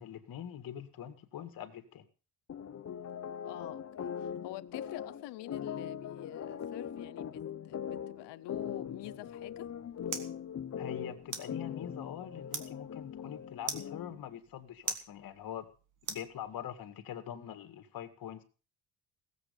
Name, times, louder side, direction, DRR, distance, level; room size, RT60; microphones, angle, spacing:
voice 1, 0.0-2.0 10.8-15.7 16.1-18.4, left 10 dB, 55° left, 2.1 m, -43 dB
sound 1, 2.5-14.3, left 8 dB, 40° left, 1.1 m, -41 dB
voice 2, 3.4-9.7, left 17 dB, 85° left, 0.7 m, -47 dB
sound 2, 9.3-16.9, right 5 dB, 50° right, 2.0 m, -45 dB
17.0 x 7.8 x 6.8 m
cardioid pair, 135°, 41 cm